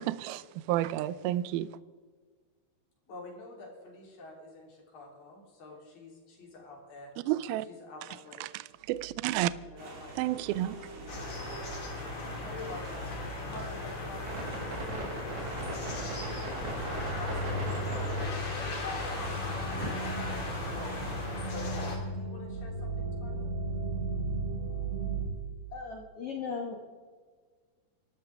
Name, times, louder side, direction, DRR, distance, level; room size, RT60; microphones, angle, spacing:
voice 1, 0.0-1.7 7.3-7.7 8.4-8.6 8.9-9.5 10.2-10.9, right 14 dB, 85° right, 2.1 m, -31 dB
voice 2, 3.1-7.1 7.7-8.5 9.7-10.1 10.9-11.2 12.1-15.5 16.0-18.4 19.0-19.1 19.5-23.5, left 2 dB, 55° left, 4.9 m, -48 dB
sound 1, 9.0-9.1 9.4-9.8 10.1-25.3, right 2 dB, 65° right, 7.1 m, -37 dB
sound 2, 9.8-21.3, right 2 dB, 45° right, 3.1 m, -47 dB
sound 3, 11.1-22.0, left 3 dB, 40° left, 2.8 m, -37 dB
voice 3, 25.7-26.8, left 5 dB, 75° left, 1.3 m, -37 dB
25.0 x 12.5 x 3.5 m
omnidirectional pair, 4.9 m